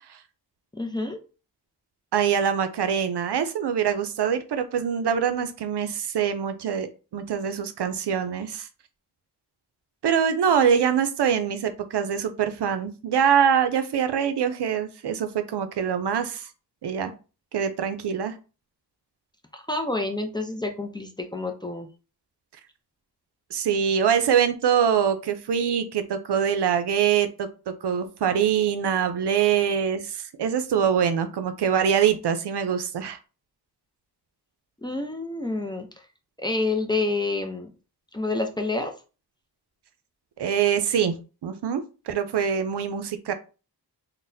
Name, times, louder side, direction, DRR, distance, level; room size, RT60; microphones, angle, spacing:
voice 1, 0.7-1.2 19.5-21.9 34.8-35.9 36.4-37.7 38.1-38.9, left 2 dB, 10° left, 3 dB, 0.4 m, -28 dB
voice 2, 2.1-6.9 7.1-8.7 10.0-16.5 16.8-17.1 17.5-18.3 23.5-33.2 40.4-41.2 41.4-43.3, right 8 dB, 80° right, 9 dB, 0.5 m, -24 dB
3.9 x 2.1 x 2.6 m, 0.33 s
wide cardioid pair, 95°, 40 cm